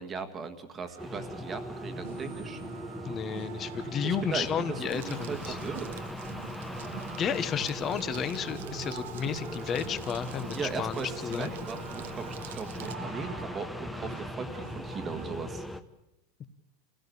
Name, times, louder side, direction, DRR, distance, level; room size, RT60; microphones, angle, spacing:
voice 1, 0.0-2.6 4.0-6.0 10.5-15.6, right 5 dB, 15° right, 8 dB, 1.6 m, -38 dB
sound 1, 0.8-15.4, right 10 dB, 70° right, 1.6 m, -46 dB
sound 2, 1.0-15.8, left 1 dB, 5° left, 0.9 m, -40 dB
voice 2, 3.0-5.6 7.2-11.5 16.4-16.5, left 7 dB, 20° left, 13 dB, 1.1 m, -32 dB
Crumpling crinkling, 4.8-12.9, right 9 dB, 90° right, 1.4 m, -49 dB
27.5 x 16.5 x 8.4 m, 0.90 s
supercardioid pair, 175°, 0 cm